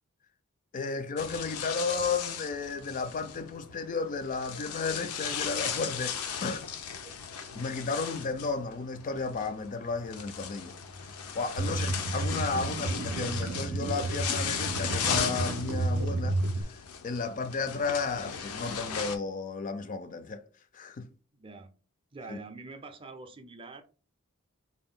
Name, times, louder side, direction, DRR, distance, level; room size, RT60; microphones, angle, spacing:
voice 1, 0.7-6.7 7.6-10.8 11.3-16.8 17.0-20.4 20.7-21.1 22.3-22.4, left 4 dB, 35° left, 0.3 m, -33 dB
sound 1, 1.2-19.2, left 7 dB, 90° left, 0.5 m, -37 dB
sound 2, 11.6-16.6, right 2 dB, 85° right, 0.4 m, -31 dB
voice 2, 21.3-21.7 22.1-23.8, right 3 dB, 25° right, 0.5 m, -45 dB
4.0 x 2.2 x 3.6 m
head